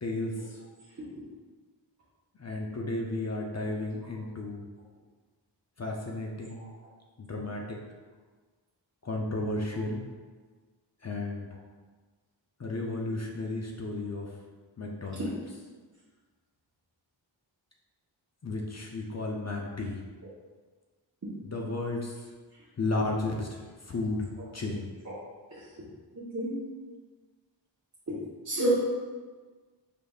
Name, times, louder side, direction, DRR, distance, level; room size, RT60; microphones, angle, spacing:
voice 1, 0.0-0.6 2.4-4.7 5.8-6.6 7.2-7.8 9.0-10.0 11.0-11.5 12.6-14.4 14.8-15.3 18.4-20.0 21.4-22.3 22.8-24.9, left 2 dB, 35° left, -1 dB, 0.5 m, -33 dB
voice 2, 26.1-26.6 28.1-28.2 28.4-28.7, right 1 dB, 35° right, -9 dB, 0.9 m, -30 dB
5.1 x 3.2 x 2.3 m, 1.4 s
wide cardioid pair, 75°, 46 cm